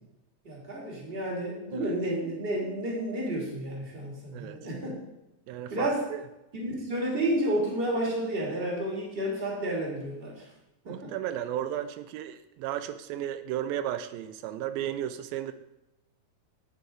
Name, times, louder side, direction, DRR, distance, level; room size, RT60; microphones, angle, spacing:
voice 1, 0.4-4.9 5.7-6.0 6.5-10.5 10.8-11.1, right 1 dB, 15° right, -3 dB, 2.6 m, -31 dB
voice 2, 5.5-6.2 10.9-15.5, right 11 dB, 90° right, 11 dB, 2.4 m, -34 dB
10.0 x 9.5 x 3.9 m, 0.92 s
omnidirectional pair, 4.1 m